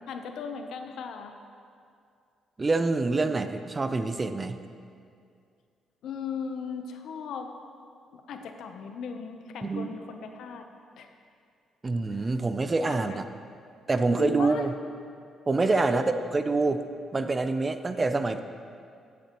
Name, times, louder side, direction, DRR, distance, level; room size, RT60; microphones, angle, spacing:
voice 1, 0.1-1.4 6.0-7.5 8.1-10.6 10.9-11.1 12.1-12.3 12.7-13.2 14.2-14.7 15.7-16.2, left 6 dB, 75° left, 6 dB, 0.7 m, -37 dB
voice 2, 2.6-4.6 9.6-10.0 11.8-13.2 13.9-14.7 15.5-16.8 17.1-18.4, right 3 dB, 25° right, 10 dB, 0.5 m, -26 dB
13.0 x 8.4 x 3.0 m, 2.4 s
cardioid pair, 90°, 0 cm